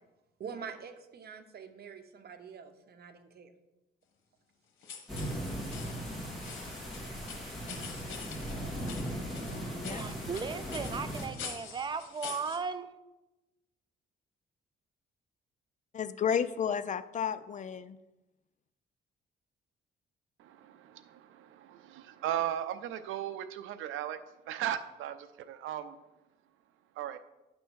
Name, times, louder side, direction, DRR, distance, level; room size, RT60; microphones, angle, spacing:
voice 1, 0.4-3.5, right 6 dB, 55° right, 1.0 m, -45 dB
sound 1, 4.8-12.6, left 6 dB, 85° left, 1.3 m, -46 dB
sound 2, 5.1-11.3, equal, ahead, 2.7 m, -38 dB
voice 2, 9.8-12.9, right 5 dB, 25° right, 0.5 m, -37 dB
voice 3, 15.9-18.0, left 7 dB, 40° left, 0.4 m, -32 dB
voice 4, 20.4-26.0 27.0-27.2, right 11 dB, 85° right, 0.5 m, -37 dB
10.0 x 3.5 x 6.3 m
cardioid pair, 90°, 20 cm